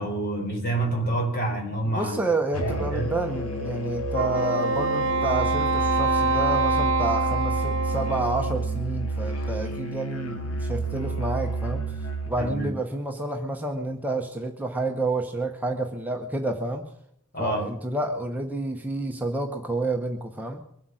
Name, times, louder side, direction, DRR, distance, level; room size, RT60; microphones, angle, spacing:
voice 1, 0.0-2.2 2.6-3.1 12.4-12.7 17.3-17.7, right 2 dB, 40° left, 1 dB, 4.2 m, -28 dB
voice 2, 1.8-12.0 12.3-16.9 17.4-20.6, right 2 dB, 5° right, 3 dB, 0.8 m, -29 dB
Musical instrument, 2.5-12.4, right 2 dB, 85° left, 2.0 m, -30 dB
Wind instrument woodwind instrument, 4.1-8.7, right 3 dB, 55° right, 1.0 m, -25 dB
23.0 x 8.0 x 6.3 m, 0.76 s
head